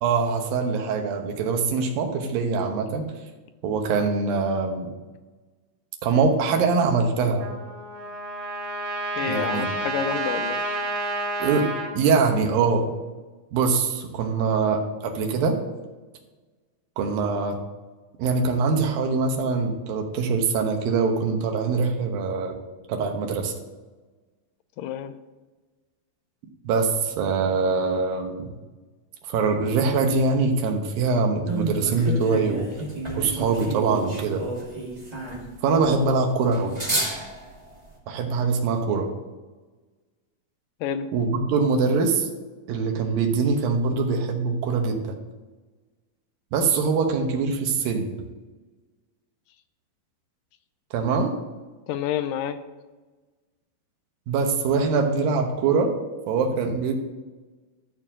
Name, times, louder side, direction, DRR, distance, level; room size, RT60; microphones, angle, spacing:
voice 1, 0.0-3.1 3.6-4.9 6.0-7.5 9.2-9.7 11.4-12.9 13.5-15.6 17.0-17.6 18.2-22.6 22.9-23.5 26.6-28.5 29.3-32.7 33.2-34.5 35.6-36.8 38.1-39.1 41.1-42.3 42.7-45.2 46.5-48.1 50.9-51.4 54.3-56.0 56.3-56.9, right 4 dB, 85° right, 3 dB, 2.9 m, -23 dB
Trumpet, 7.4-11.9, right 2 dB, 55° right, 2.4 m, -30 dB
voice 2, 9.2-10.6 24.8-25.1 40.8-41.1 51.9-52.6, left 9 dB, 85° left, 11 dB, 2.2 m, -29 dB
sound 1, 31.5-37.9, right 2 dB, 15° right, 1.5 m, -31 dB
12.5 x 4.6 x 7.3 m, 1.2 s
omnidirectional pair, 4.0 m